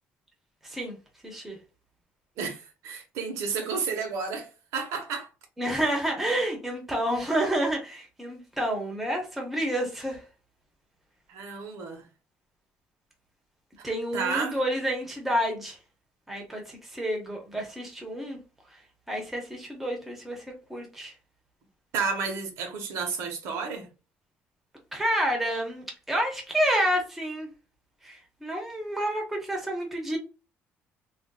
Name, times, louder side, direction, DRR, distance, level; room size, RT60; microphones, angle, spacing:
voice 1, 0.6-1.0 1.2-1.6 5.6-10.2 13.8-15.8 16.3-18.4 19.1-21.1 24.9-27.5 28.0-30.2, equal, 5° right, 0.8 m, -29 dB
voice 2, 2.4-5.3 11.3-12.0 14.1-14.6 21.9-23.9, right 5 dB, 75° right, 0.9 m, -31 dB
3.1 x 2.5 x 2.2 m
cardioid pair, 170°, 5 cm